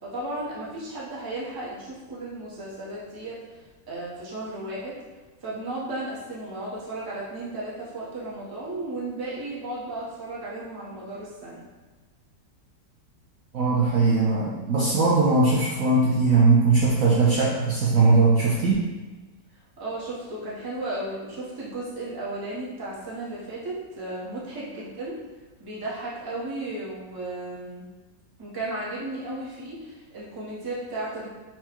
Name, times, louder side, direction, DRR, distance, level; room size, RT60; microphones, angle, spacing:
voice 1, 0.0-4.9 5.4-11.6 19.5-25.1 25.6-27.8 28.4-31.3, right 2 dB, 20° right, -7 dB, 0.7 m, -34 dB
voice 2, 13.5-18.9, right 3 dB, 65° right, -5 dB, 0.8 m, -20 dB
4.5 x 2.3 x 4.4 m, 1.3 s
omnidirectional pair, 1.9 m